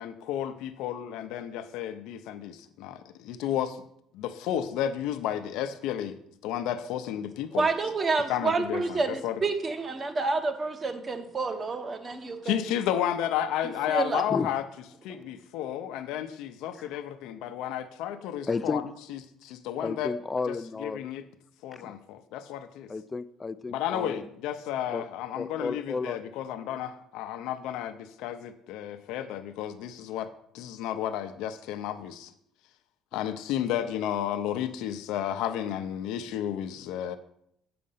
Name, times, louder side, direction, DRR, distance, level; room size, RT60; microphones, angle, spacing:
voice 1, 0.0-3.8 4.1-6.1 6.4-7.7 8.3-9.4 12.4-14.6 15.0-18.8 19.1-20.1 20.5-21.2 21.6-22.9 23.7-30.3 30.5-32.3 33.1-37.2, left 10 dB, 80° left, 8 dB, 0.6 m, -32 dB
voice 2, 7.5-12.7 13.9-14.2, right 3 dB, 30° right, 8 dB, 1.0 m, -29 dB
voice 3, 18.5-18.8 19.8-21.1 21.8-22.0 22.9-24.3 24.9-25.0 25.3-26.2, left 4 dB, 20° left, 14 dB, 0.4 m, -32 dB
7.7 x 5.2 x 5.6 m, 0.72 s
cardioid pair, 125°, 0 cm